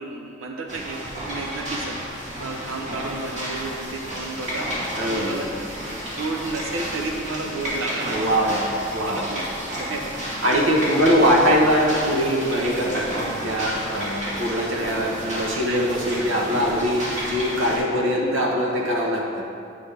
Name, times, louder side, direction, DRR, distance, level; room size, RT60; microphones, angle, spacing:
voice 1, 0.0-4.7 5.1-5.5 5.8-8.6 9.1-9.4 9.8-10.1 13.8-13.9 14.2-14.9 15.7-15.8, right 3 dB, 85° right, 2 dB, 0.7 m, -32 dB
sound 1, 0.7-17.8, equal, 35° right, 2.0 m, -31 dB
voice 2, 5.0-5.4 8.1-9.3 10.4-19.4, equal, 70° right, -2 dB, 1.3 m, -22 dB
8.3 x 7.9 x 3.5 m, 2.5 s
head